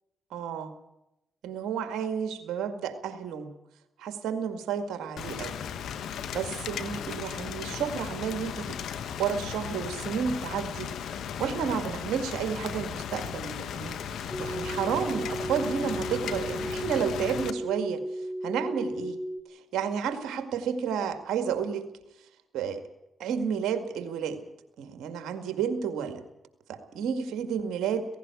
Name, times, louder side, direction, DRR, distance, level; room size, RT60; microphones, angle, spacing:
voice 1, 0.3-0.7 1.4-3.5 4.0-5.5 6.3-8.8 9.2-18.0 18.4-19.2 19.5-21.9 22.5-22.8 23.2-24.4 24.8-26.2 26.7-28.1, right 7 dB, 80° right, 8 dB, 2.0 m, -31 dB
Rain, 5.2-17.5, left 8 dB, 80° left, 1.2 m, -36 dB
sound 1, 14.3-19.4, right 1 dB, 15° left, 2.2 m, -35 dB
16.5 x 16.0 x 9.6 m, 0.89 s
supercardioid pair, 55°, 0 cm